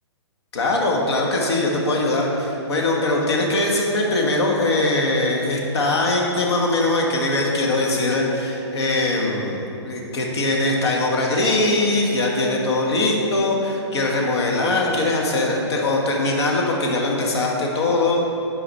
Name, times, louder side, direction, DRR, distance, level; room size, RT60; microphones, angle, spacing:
voice 1, 0.5-18.2, left 2 dB, 65° left, -1 dB, 1.6 m, -21 dB
11.5 x 4.8 x 4.2 m, 2.9 s
hypercardioid pair, 165°, 15 cm